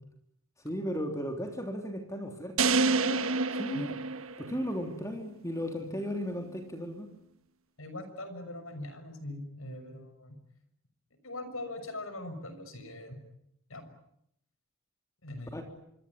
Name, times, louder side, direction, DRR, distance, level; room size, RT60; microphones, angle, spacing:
voice 1, 0.6-3.9 4.4-7.1 15.5-15.6, equal, 15° left, 3 dB, 3.2 m, -36 dB
sound 1, 2.6-4.9, right 4 dB, 75° right, 1.3 m, -28 dB
voice 2, 7.8-10.4 11.2-13.2 13.7-13.9 15.2-15.6, left 1 dB, 75° left, 10 dB, 6.3 m, -41 dB
26.0 x 23.5 x 9.6 m, 0.76 s
head